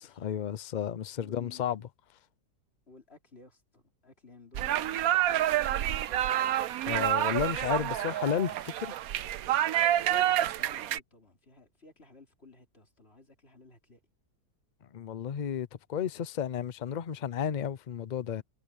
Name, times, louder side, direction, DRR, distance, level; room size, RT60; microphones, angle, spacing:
voice 1, 0.2-1.8 6.8-8.9 14.9-18.4, left 8 dB, 80° left, 0.4 m, -32 dB
voice 2, 1.2-1.6 2.9-6.3 10.1-14.0, left 3 dB, 40° left, 4.2 m, -54 dB
sound 1, 4.5-11.0, right 12 dB, 70° right, 1.1 m, -28 dB
omnidirectional pair, 1.7 m